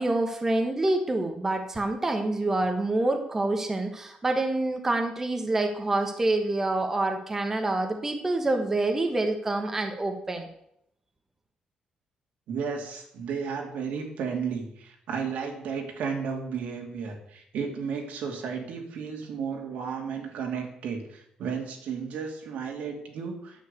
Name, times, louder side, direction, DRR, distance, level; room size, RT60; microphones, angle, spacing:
voice 1, 0.0-10.5, right 2 dB, 15° right, 4 dB, 1.2 m, -27 dB
voice 2, 12.5-23.7, right 6 dB, 80° right, 2 dB, 2.6 m, -33 dB
9.6 x 7.5 x 8.3 m, 0.75 s
cardioid pair, 155°, 2 cm